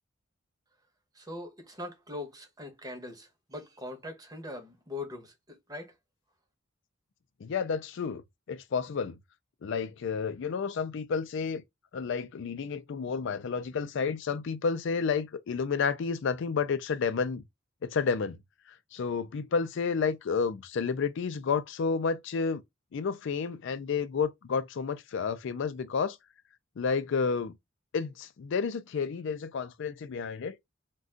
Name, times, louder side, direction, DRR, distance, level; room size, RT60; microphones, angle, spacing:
voice 1, 1.1-5.9, left 2 dB, 20° right, 0.8 m, -41 dB
voice 2, 7.4-8.2 8.5-9.2 9.6-11.6 11.9-17.4 17.8-18.4 18.9-22.6 22.9-26.2 26.8-27.5 27.9-30.6, left 5 dB, 65° left, 0.4 m, -30 dB
2.5 x 2.2 x 3.6 m
head